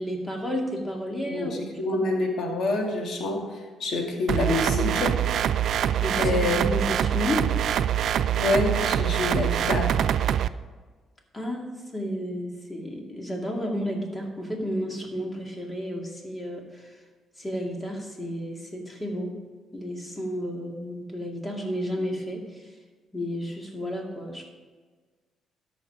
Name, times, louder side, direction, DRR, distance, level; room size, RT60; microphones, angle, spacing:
voice 1, 0.0-1.8 6.0-7.5 11.3-16.9 17.4-19.3 19.7-22.7 23.1-24.5, equal, 20° left, 0 dB, 2.3 m, -32 dB
voice 2, 1.3-3.5 3.8-5.1 6.2-6.7 8.4-10.0, left 2 dB, 65° left, 1 dB, 2.1 m, -26 dB
sound 1, 4.3-10.5, right 10 dB, 70° right, 0.3 m, -24 dB
13.5 x 5.2 x 5.0 m, 1.4 s
cardioid pair, 90°, 0 cm